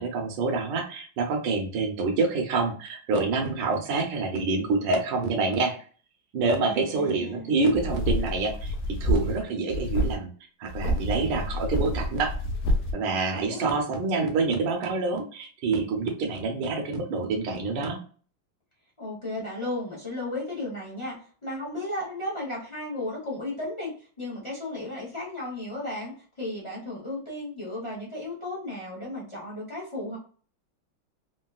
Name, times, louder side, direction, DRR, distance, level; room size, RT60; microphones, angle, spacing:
voice 1, 0.0-5.7 6.3-8.7 9.0-10.3 10.6-12.3 12.9-18.0, right 3 dB, 70° right, 2 dB, 1.4 m, -27 dB
voice 2, 6.6-7.5 13.3-13.8 19.0-30.2, left 1 dB, 40° left, -6 dB, 0.4 m, -34 dB
sound 1, 7.7-9.4 9.7-10.2 10.7-12.9, equal, 75° left, 0.8 m, -28 dB
3.8 x 2.1 x 2.3 m, 0.42 s
omnidirectional pair, 2.2 m